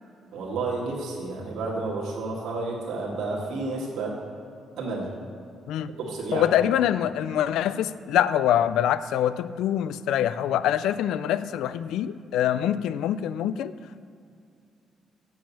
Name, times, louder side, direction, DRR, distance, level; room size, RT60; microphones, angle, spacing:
voice 1, 0.3-4.1 4.8-5.1 6.0-6.7, right 3 dB, 80° right, -4 dB, 1.8 m, -31 dB
voice 2, 6.3-13.7, left 11 dB, 85° left, 14 dB, 0.3 m, -24 dB
7.7 x 5.6 x 7.1 m, 2.4 s
cardioid pair, 90°, 0 cm